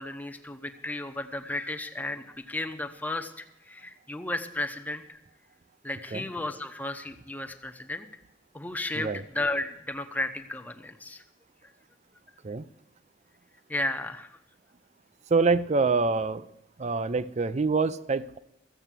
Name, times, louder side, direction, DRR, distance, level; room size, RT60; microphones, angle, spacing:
voice 1, 0.0-5.2 5.8-8.1 8.5-11.2 13.7-14.3, left 2 dB, 10° left, 5 dB, 0.8 m, -34 dB
voice 2, 15.3-16.4 16.8-18.4, right 4 dB, 35° right, 15 dB, 0.5 m, -25 dB
14.0 x 8.1 x 7.4 m, 0.86 s
head